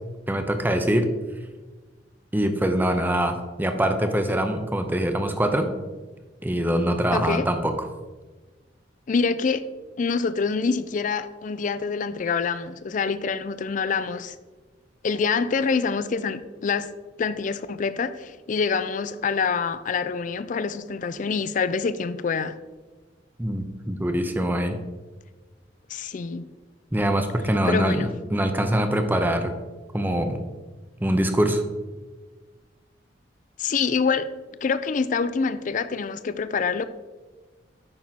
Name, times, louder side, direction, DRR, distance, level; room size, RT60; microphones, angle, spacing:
voice 1, 0.3-1.1 2.3-5.7 6.4-7.7 23.4-24.8 26.9-29.5 29.9-30.4 31.0-31.6, right 1 dB, 10° right, 6 dB, 0.6 m, -23 dB
voice 2, 7.1-7.5 9.1-9.6 10.0-14.4 15.0-16.9 17.2-22.6 25.9-26.4 27.7-28.1 33.6-34.3 34.6-36.8, left 5 dB, 45° left, 13 dB, 0.4 m, -26 dB
8.7 x 6.0 x 4.0 m, 1.3 s
head